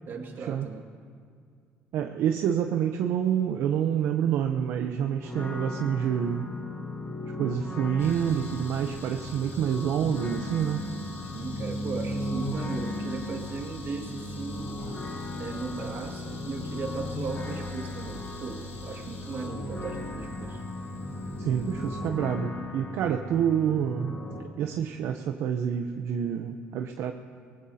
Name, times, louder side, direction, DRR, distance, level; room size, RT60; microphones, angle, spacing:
voice 1, 0.1-0.9 11.3-14.7 15.4-20.6, right 4 dB, 50° right, 2 dB, 2.1 m, -37 dB
voice 2, 1.9-6.5 7.3-10.8 21.4-24.2 24.6-27.1, right 9 dB, 70° right, 5 dB, 0.7 m, -27 dB
sound 1, 5.2-24.4, left 1 dB, 35° left, 3.4 m, -37 dB
sound 2, 8.0-22.1, left 2 dB, 65° left, 4.4 m, -42 dB
24.0 x 19.5 x 2.8 m, 2.2 s
cardioid pair, 105°, 5 cm